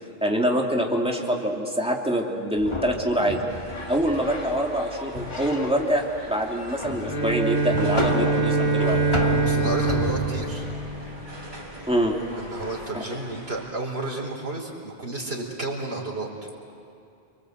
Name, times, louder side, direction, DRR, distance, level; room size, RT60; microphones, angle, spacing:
voice 1, 0.2-3.4 3.9-9.0 11.9-12.1 12.9-13.0, equal, 5° right, -1 dB, 3.0 m, -25 dB
sound 1, 2.6-12.9, left 1 dB, 30° left, 1.5 m, -33 dB
sound 2, 3.5-13.7, right 1 dB, 50° right, 4.3 m, -42 dB
Bowed string instrument, 6.9-11.5, right 4 dB, 85° left, 4.2 m, -25 dB
voice 2, 9.4-10.7 12.4-16.5, right 2 dB, 70° right, -1 dB, 4.7 m, -32 dB
29.5 x 23.0 x 8.2 m, 2.7 s
omnidirectional pair, 1.1 m